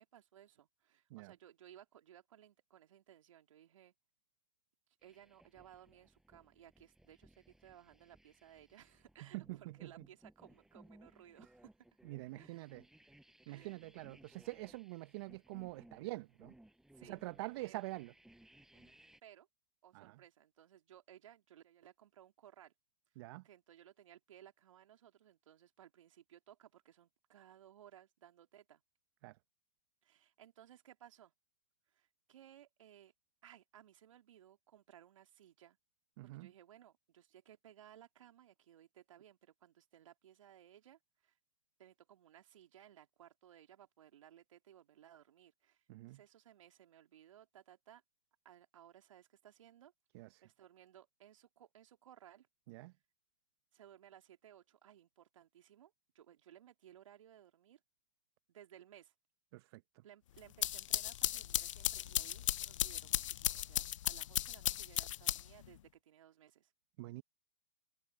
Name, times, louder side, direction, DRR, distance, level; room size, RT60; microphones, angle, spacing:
voice 1, 0.0-3.9 5.0-11.7 12.4-12.7 13.5-13.8 16.9-17.2 17.5-17.8 18.7-18.9 19.2-19.5 19.8-22.7 23.4-28.8 30.0-31.3 31.9-33.1 33.4-35.8 36.2-41.4 41.8-48.0 48.4-49.9 50.4-52.5 53.7-57.8 58.5-59.1 60.0-66.7, right 11 dB, 65° right, 3.4 m, -60 dB
sound 1, 5.0-19.2, right 1 dB, ahead, 6.8 m, -64 dB
voice 2, 9.3-9.9 12.0-12.8 13.5-16.5 17.0-18.1 19.9-20.2 23.2-23.4 29.2-29.4 36.2-36.5 45.9-46.2 50.1-50.4 52.7-52.9 59.5-59.8 67.0-67.2, right 21 dB, 45° right, 1.2 m, -45 dB
sound 2, 60.4-65.7, left 12 dB, 60° left, 0.7 m, -36 dB
hypercardioid pair, 120°, 18 cm